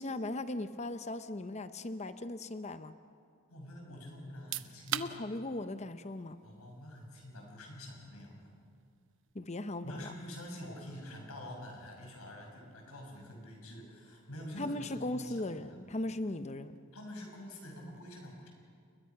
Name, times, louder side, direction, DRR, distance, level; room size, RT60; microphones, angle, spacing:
voice 1, 0.0-3.0 4.9-6.4 9.3-10.1 14.6-16.8, left 2 dB, 30° left, 11 dB, 0.8 m, -38 dB
voice 2, 3.5-5.1 6.4-8.5 9.8-15.8 16.9-18.5, left 1 dB, 90° left, 1 dB, 6.2 m, -47 dB
sound 1, 4.3-16.9, right 10 dB, 60° right, 0.8 m, -48 dB
29.5 x 21.5 x 5.9 m, 2.3 s
head